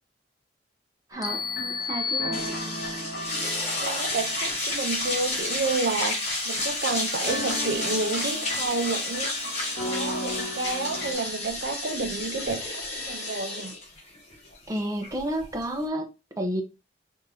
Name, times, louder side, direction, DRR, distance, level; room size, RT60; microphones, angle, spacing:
sound 1, 1.1-11.1, equal, 55° left, 1.7 m, -36 dB
voice 1, 1.1-2.5 14.7-16.1 16.4-16.6, right 1 dB, 20° right, 0.6 m, -31 dB
sound 2, 1.2-3.1, left 6 dB, 20° left, 0.5 m, -32 dB
sound 3, 2.3-15.9, left 2 dB, 35° left, 1.2 m, -31 dB
voice 2, 3.8-9.3 9.8-13.7, right 3 dB, 65° right, 0.5 m, -30 dB
3.5 x 2.7 x 4.1 m
head